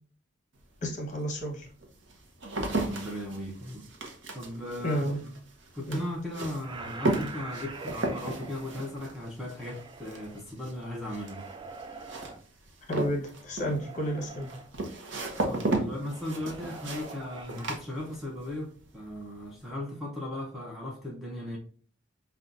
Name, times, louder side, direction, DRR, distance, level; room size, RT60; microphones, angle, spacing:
sound 1, 0.6-0.7 1.4-18.5 18.8-19.4, right 2 dB, 65° right, 0.7 m, -35 dB
voice 1, 0.8-1.7 4.8-5.2 5.9-6.0 12.9-14.5, equal, 40° left, 1.1 m, -31 dB
voice 2, 2.5-3.9 4.3-5.0 5.7-11.5 15.5-21.6, left 1 dB, ahead, 0.7 m, -37 dB
sound 2, 6.6-10.4 11.0-12.4 13.7-14.7 16.1-17.8, right 4 dB, 25° right, 0.3 m, -45 dB
5.4 x 2.3 x 2.5 m
head